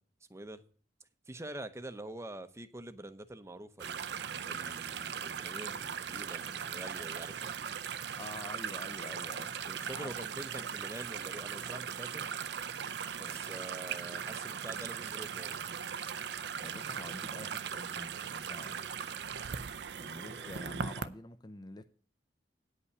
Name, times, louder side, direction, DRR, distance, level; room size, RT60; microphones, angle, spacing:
voice 1, 0.3-0.6 1.3-4.0 4.5-7.5 9.6-12.3 13.2-15.6 20.1-20.5, right 1 dB, 15° right, 0.7 m, -46 dB
sound 1, 3.8-21.1, right 7 dB, 70° right, 0.5 m, -39 dB
voice 2, 8.2-9.5 9.9-10.1 13.2-13.4 16.6-18.8 19.9-21.8, left 2 dB, 25° left, 0.5 m, -47 dB
9.6 x 5.5 x 8.3 m
head